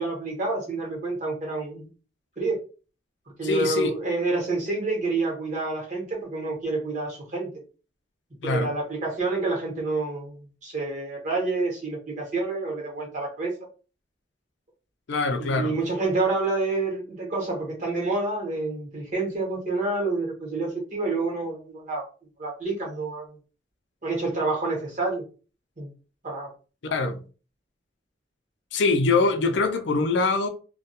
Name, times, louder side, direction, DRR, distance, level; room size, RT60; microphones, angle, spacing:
voice 1, 0.0-1.9 2.4-2.6 3.4-7.5 8.4-13.5 15.4-22.0 22.4-23.4 24.0-25.2 25.8-25.9 26.2-26.5, right 3 dB, 40° right, 1.0 m, -28 dB
voice 2, 3.4-3.9 8.4-8.7 15.1-15.7 26.9-27.2 28.7-30.5, left 3 dB, 75° left, 0.4 m, -23 dB
2.2 x 2.2 x 2.8 m
head